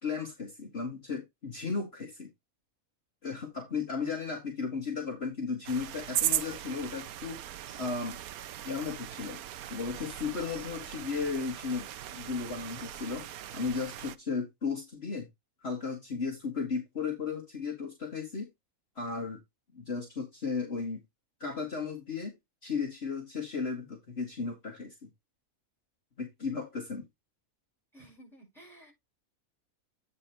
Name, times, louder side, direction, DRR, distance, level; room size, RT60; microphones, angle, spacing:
voice 1, 0.0-2.3 3.2-7.4 7.7-8.2 8.6-9.4 9.7-13.3 13.5-15.3 15.6-18.5 18.9-19.4 19.7-21.0 21.4-22.3 22.6-25.1 26.2-27.0, left 5 dB, 45° left, 1.8 m, -35 dB
sound 1, 5.6-14.2, right 12 dB, 90° right, 1.1 m, -38 dB
voice 2, 27.9-28.9, right 1 dB, ahead, 5.6 m, -54 dB
8.9 x 4.3 x 4.3 m
omnidirectional pair, 1.5 m